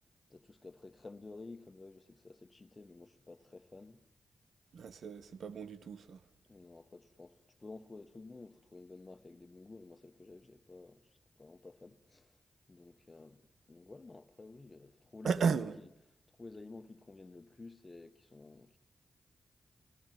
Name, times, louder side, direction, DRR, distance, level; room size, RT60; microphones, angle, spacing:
voice 1, 0.3-4.0 6.5-11.0 11.4-12.4 12.7-13.4 13.7-15.7 16.4-18.8, left 3 dB, 35° left, 1.4 m, -52 dB
voice 2, 4.7-6.3 15.2-15.8, right 6 dB, 80° right, 1.0 m, -34 dB
29.0 x 18.5 x 9.3 m
cardioid pair, 50°, 0 cm